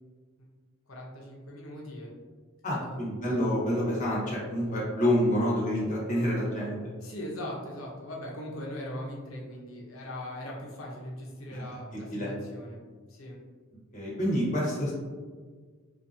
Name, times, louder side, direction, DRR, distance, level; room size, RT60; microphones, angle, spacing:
voice 1, 0.9-2.1 2.7-3.0 7.0-12.8 13.1-13.4, left 1 dB, 90° left, -3 dB, 0.9 m, -40 dB
voice 2, 2.6-6.8 11.5-11.6 11.9-12.3 13.9-14.9, equal, 40° left, -6 dB, 1.2 m, -28 dB
4.1 x 2.5 x 2.7 m, 1.5 s
head